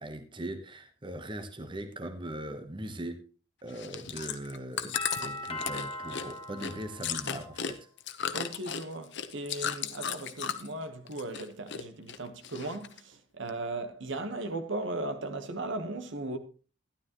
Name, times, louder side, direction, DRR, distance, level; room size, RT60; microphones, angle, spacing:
voice 1, 0.0-3.2 3.6-7.9, right 1 dB, 25° right, 1.0 m, -40 dB
Chewing mastication, 3.7-10.8 11.1-11.8 12.1-13.0 13.5-13.6, left 8 dB, 60° left, 0.9 m, -35 dB
Doorbell, 4.9-7.8, left 2 dB, 30° left, 1.4 m, -39 dB
voice 2, 8.3-16.4, right 2 dB, 60° right, 1.2 m, -37 dB
12.5 x 11.5 x 3.0 m
head